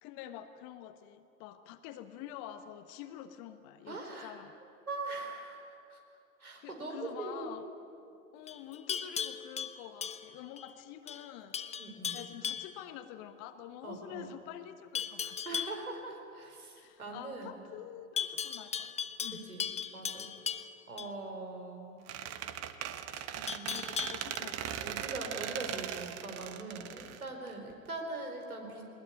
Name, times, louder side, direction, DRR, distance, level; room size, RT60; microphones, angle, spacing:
voice 1, 0.0-4.5 6.6-7.7 8.3-11.6 12.1-15.6 16.8-18.9 19.2-19.4 23.7-25.0, left 11 dB, 45° left, 9 dB, 1.3 m, -47 dB
voice 2, 3.9-4.3 4.9-6.0 6.4-7.5 11.8-12.2 13.8-14.3 15.4-17.6 19.3-19.7 19.9-20.3 20.9-22.0 23.1-23.8 24.8-28.8, right 2 dB, 80° right, 3 dB, 4.7 m, -42 dB
Livestock farm animals working animals, 8.5-10.7 11.1-11.3 11.5-12.8 15.0-15.8 18.2-21.1 23.5-24.4, left 8 dB, 15° left, 0.7 m, -37 dB
Squeak, 22.1-27.9, right 10 dB, 35° right, 1.3 m, -39 dB
20.0 x 20.0 x 9.1 m, 2.7 s
figure-of-eight pair, 90°, 42 cm